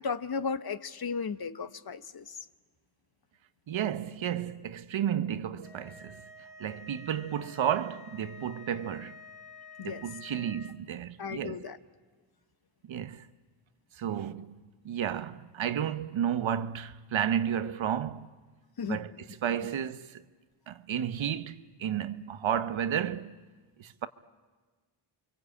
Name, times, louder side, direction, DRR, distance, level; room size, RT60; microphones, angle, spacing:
voice 1, 0.0-2.4 9.8-10.0 11.2-11.8 18.8-19.2, left 5 dB, 45° left, 1.2 m, -35 dB
voice 2, 3.7-6.2 6.6-9.2 9.8-11.6 12.9-13.3 14.0-14.5 14.8-18.3 18.9-19.1 19.4-20.2 20.7-23.4 23.8-24.1, right 9 dB, 65° right, 1.2 m, -32 dB
sound 1, 5.6-10.8, left 4 dB, 85° left, 2.6 m, -50 dB
29.5 x 23.5 x 8.5 m
cardioid pair, 60°, 50 cm